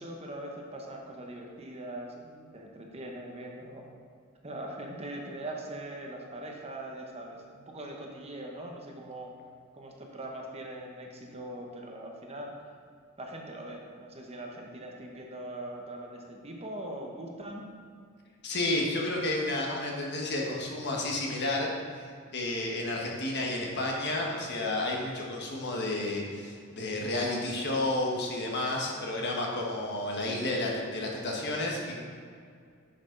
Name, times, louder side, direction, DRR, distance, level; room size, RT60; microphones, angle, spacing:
voice 1, 0.0-3.9 4.4-9.3 9.7-12.5 13.2-17.7, right 1 dB, 30° right, 0 dB, 1.0 m, -41 dB
voice 2, 18.4-21.7 22.3-32.0, left 2 dB, 50° left, -1 dB, 1.4 m, -31 dB
10.5 x 5.9 x 3.9 m, 2.2 s
head